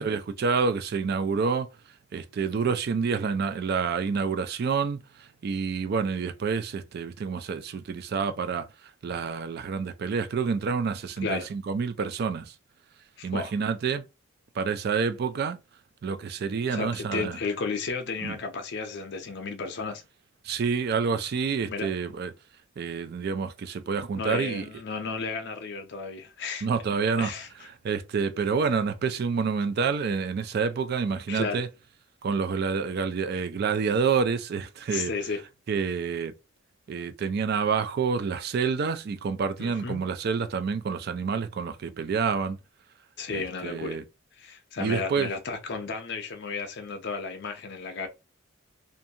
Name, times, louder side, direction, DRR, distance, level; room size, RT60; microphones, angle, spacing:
voice 1, 0.0-1.7 2.1-8.7 9.0-12.5 13.2-14.0 14.6-15.6 16.0-17.4 18.2-18.4 20.4-22.3 22.8-24.7 26.6-27.3 27.8-31.7 32.2-35.1 35.7-36.3 36.9-42.6 43.3-44.0 44.8-45.3, right 5 dB, 50° right, 0.3 m, -28 dB
voice 2, 13.2-13.5 16.7-20.0 21.7-21.9 24.2-26.7 27.2-27.5 31.3-31.6 34.9-35.4 39.6-40.1 43.2-44.0 44.4-48.1, left 4 dB, 55° left, 0.6 m, -33 dB
2.5 x 2.3 x 2.7 m
head